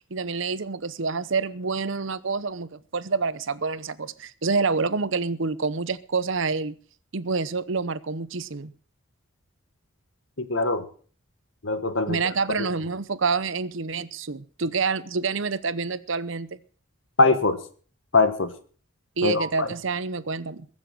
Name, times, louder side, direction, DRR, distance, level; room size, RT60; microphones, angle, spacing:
voice 1, 0.1-6.7 7.1-8.7 12.1-16.5 19.2-20.7, right 4 dB, 65° right, 16 dB, 0.8 m, -27 dB
voice 2, 10.4-10.8 11.6-12.2 12.6-12.7 17.2-17.6 18.1-18.5 19.2-19.7, left 3 dB, 60° left, 11 dB, 1.5 m, -22 dB
21.5 x 7.4 x 6.2 m, 0.43 s
head